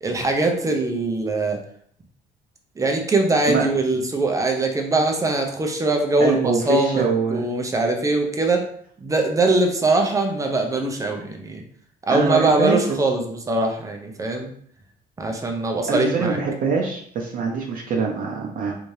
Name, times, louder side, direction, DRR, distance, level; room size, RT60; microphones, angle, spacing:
voice 1, 0.0-1.6 2.8-7.0 7.3-8.6 9.0-11.6 12.1-14.5 15.2-16.4, right 2 dB, 20° right, 3 dB, 0.6 m, -22 dB
voice 2, 6.2-7.4 12.1-13.0 15.9-18.8, right 5 dB, 55° right, -2 dB, 0.7 m, -23 dB
3.4 x 2.7 x 3.2 m, 0.62 s
cardioid pair, 110°, 17 cm